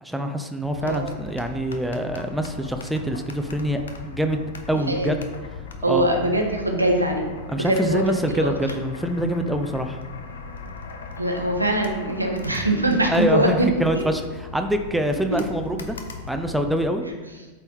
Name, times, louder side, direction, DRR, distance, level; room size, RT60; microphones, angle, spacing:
voice 1, 0.0-5.2 5.9-6.1 7.5-10.0 13.1-17.0, right 1 dB, ahead, 5 dB, 0.5 m, -25 dB
sound 1, 0.6-16.9, left 4 dB, 65° left, 0.7 m, -39 dB
voice 2, 5.8-8.5 11.2-14.0, right 1 dB, 85° right, 2 dB, 0.9 m, -23 dB
7.9 x 4.1 x 3.6 m, 1.3 s
figure-of-eight pair, 90°, 0 cm